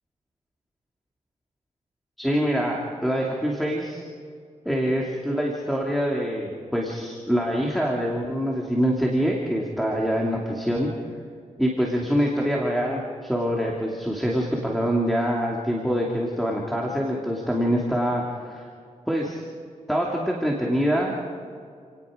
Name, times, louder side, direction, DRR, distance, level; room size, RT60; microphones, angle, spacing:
voice 1, 2.2-4.0 4.6-10.9 11.6-18.7 19.1-19.4 19.9-21.1, equal, ahead, -2 dB, 2.7 m, -25 dB
29.5 x 18.5 x 5.2 m, 2.2 s
wide cardioid pair, 125°, 14 cm